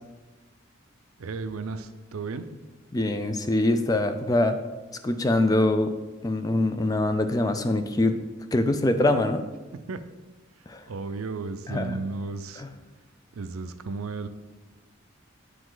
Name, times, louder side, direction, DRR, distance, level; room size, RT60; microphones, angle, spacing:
voice 1, 1.2-2.5 9.7-10.0 10.9-12.6 13.3-14.3, right 4 dB, 85° right, 11 dB, 0.5 m, -34 dB
voice 2, 2.9-4.6 5.0-5.9 6.2-8.2 8.5-9.4 10.7-10.8 11.7-12.0 12.6-12.7, left 2 dB, 15° left, 8 dB, 0.3 m, -24 dB
8.8 x 5.1 x 3.9 m, 1.2 s
head